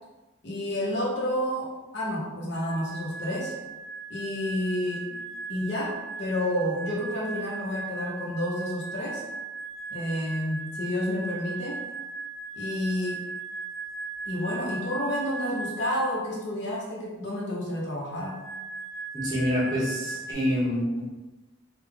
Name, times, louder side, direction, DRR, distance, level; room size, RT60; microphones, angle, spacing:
voice 1, 0.4-3.5 4.1-5.2 5.5-9.2 9.9-11.8 12.6-13.2 14.3-18.4, left 1 dB, 60° left, -5 dB, 0.8 m, -30 dB
sound 1, 2.5-16.2 18.1-20.3, right 4 dB, 85° left, 0.6 m, -38 dB
voice 2, 19.1-21.0, equal, 20° right, -7 dB, 0.9 m, -26 dB
3.4 x 2.3 x 3.4 m, 1.1 s
head